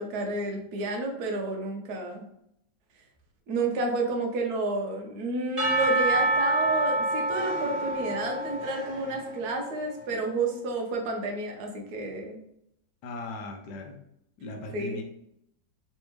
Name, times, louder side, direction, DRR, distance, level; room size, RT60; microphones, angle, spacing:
voice 1, 0.0-2.3 3.5-12.4 14.7-15.0, right 3 dB, 65° right, 2 dB, 1.2 m, -30 dB
Percussion / Church bell, 5.6-9.7, right 2 dB, 25° right, 1.2 m, -27 dB
voice 2, 13.0-14.1 14.4-15.0, left 2 dB, 75° left, 3 dB, 1.1 m, -38 dB
3.4 x 3.3 x 3.1 m, 0.76 s
omnidirectional pair, 1.9 m